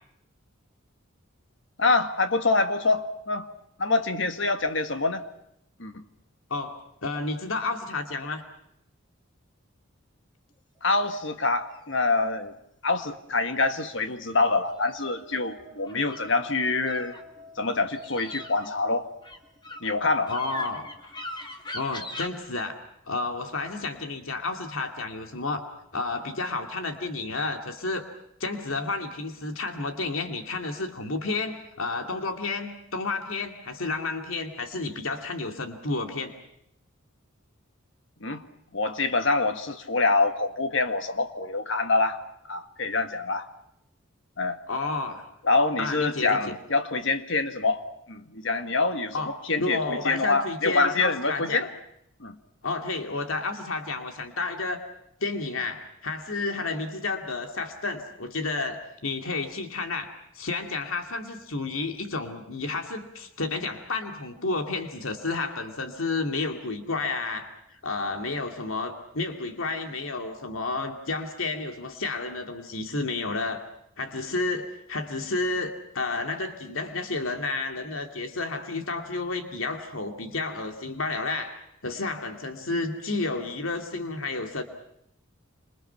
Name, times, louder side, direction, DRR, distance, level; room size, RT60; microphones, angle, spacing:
voice 1, 1.8-3.5 3.8-5.2 5.8-6.0 10.8-12.5 12.8-17.2 17.6-19.1 19.8-20.3 38.2-38.4 38.7-42.2 42.5-43.5 44.4-44.6 45.4-47.8 48.1-51.7 52.2-52.4, left 3 dB, 65° left, 8 dB, 1.8 m, -25 dB
voice 2, 7.0-8.4 20.2-21.1 21.7-22.7 23.1-25.7 25.9-28.1 28.4-36.3 44.7-45.3 45.8-46.5 49.1-51.7 52.6-54.8 55.2-73.7 74.0-84.6, left 3 dB, 80° left, 5 dB, 2.5 m, -31 dB
sound 1, 11.2-12.0 14.7-16.3 16.8-17.5 17.9-22.3, left 1 dB, 20° left, 2.2 m, -41 dB
sound 2, 14.2-20.0, equal, 10° right, 5.0 m, -50 dB
28.0 x 27.0 x 5.8 m, 0.76 s
head